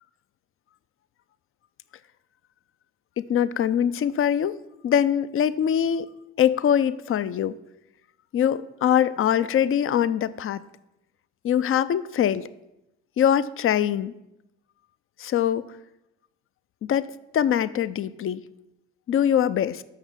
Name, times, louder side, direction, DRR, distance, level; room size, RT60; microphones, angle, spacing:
voice 1, 3.2-4.5 4.8-6.1 6.4-7.6 8.3-10.6 11.4-12.5 13.2-14.1 15.2-15.6 16.8-17.1 17.3-18.4 19.1-19.8, left 9 dB, 40° left, 15 dB, 0.5 m, -23 dB
6.1 x 6.0 x 7.2 m, 0.89 s
hypercardioid pair, 55°, 33 cm